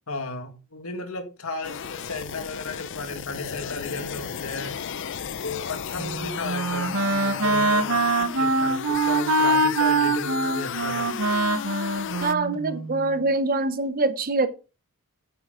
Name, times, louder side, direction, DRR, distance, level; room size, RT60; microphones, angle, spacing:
voice 1, 0.1-5.0 5.4-11.1, left 2 dB, 70° left, 2.0 m, -35 dB
sound 1, 1.6-12.3, left 8 dB, 55° left, 0.5 m, -34 dB
Wind instrument woodwind instrument, 6.0-13.1, right 2 dB, 65° right, 1.2 m, -24 dB
voice 2, 12.2-14.5, right 3 dB, 40° right, 0.9 m, -24 dB
9.0 x 8.5 x 3.8 m
head